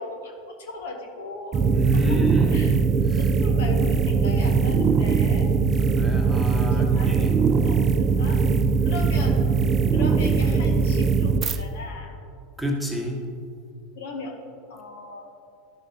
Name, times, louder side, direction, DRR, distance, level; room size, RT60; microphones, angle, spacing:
voice 1, 0.0-1.6 2.5-2.8 3.2-5.5 6.7-7.2 7.5-8.4 8.8-9.4 9.9-12.1 13.9-14.3 14.7-15.3, left 3 dB, 70° left, 3 dB, 1.0 m, -37 dB
sound 1, 1.5-11.6, right 5 dB, 35° right, 0.4 m, -21 dB
voice 2, 1.7-2.6 3.1-3.2 5.9-7.3 12.6-13.2, equal, ahead, 0 dB, 1.3 m, -28 dB
12.0 x 5.9 x 2.8 m, 2.4 s
hypercardioid pair, 85°, 0 cm